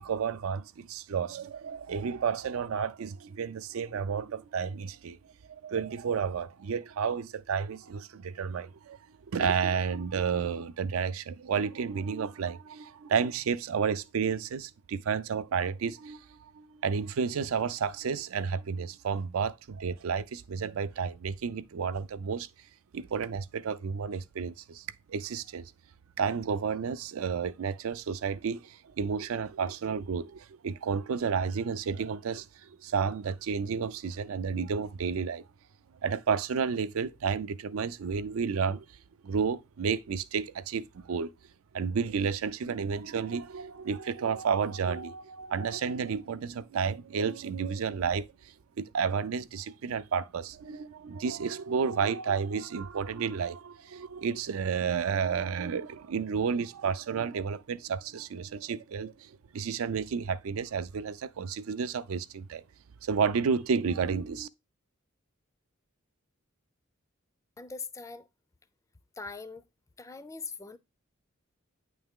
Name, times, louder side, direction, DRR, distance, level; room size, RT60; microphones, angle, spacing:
voice 1, 0.0-5.2 5.5-9.0 9.3-22.5 22.9-25.7 26.2-35.5 36.0-39.0 39.2-41.3 41.7-62.6 63.0-64.5, right 6 dB, 85° right, 0.4 m, -31 dB
voice 2, 67.6-68.3 69.2-69.6 70.0-70.8, left 4 dB, 15° left, 0.4 m, -41 dB
8.7 x 3.4 x 3.6 m
head